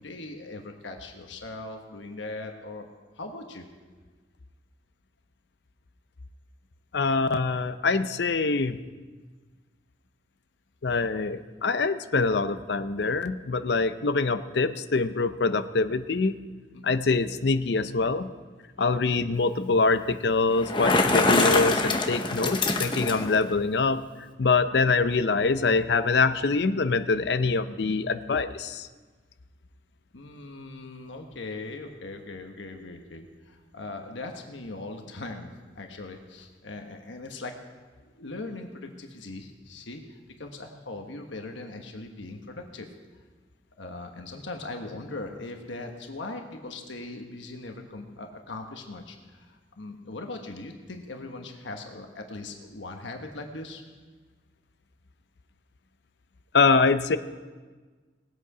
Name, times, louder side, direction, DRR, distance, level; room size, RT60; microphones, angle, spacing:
voice 1, 0.0-2.9 3.1-3.7 16.7-17.0 30.1-37.5 38.0-42.9 43.8-53.8, left 2 dB, 90° left, 4 dB, 1.2 m, -40 dB
voice 2, 6.9-8.8 10.8-16.4 16.8-18.3 18.8-24.0 24.4-28.9 56.5-57.2, left 4 dB, 70° left, 12 dB, 0.6 m, -24 dB
Bicycle, 20.5-23.4, left 2 dB, 25° left, 0.9 m, -24 dB
19.5 x 8.3 x 4.9 m, 1.4 s
head